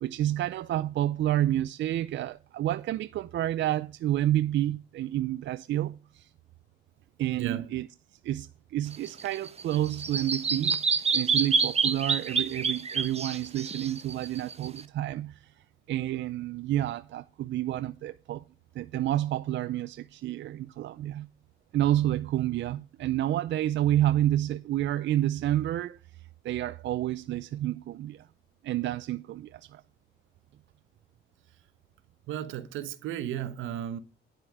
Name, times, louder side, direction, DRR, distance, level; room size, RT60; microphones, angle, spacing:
voice 1, 0.0-6.3 7.2-7.9 8.2-15.5 15.9-18.4 18.7-21.3 21.7-26.0 26.4-28.3 28.6-29.8, right 13 dB, 65° right, 0.5 m, -29 dB
voice 2, 7.3-7.7 32.3-34.0, right 10 dB, 85° right, 1.1 m, -34 dB
Bird vocalization bird call bird song, 8.9-14.8, right 5 dB, 30° right, 1.1 m, -28 dB
10.0 x 7.7 x 4.8 m
cardioid pair, 90°, 20 cm